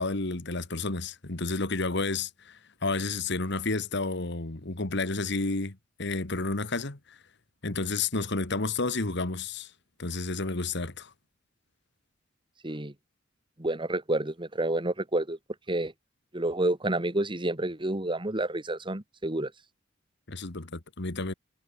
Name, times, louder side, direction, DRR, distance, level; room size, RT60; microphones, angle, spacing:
voice 1, 0.0-7.2 7.6-9.7 10.0-11.1 20.3-21.3, left 3 dB, 60° left, 1.9 m, -31 dB
voice 2, 13.6-15.4 15.7-15.9 16.3-19.5, right 1 dB, 25° right, 2.2 m, -29 dB
head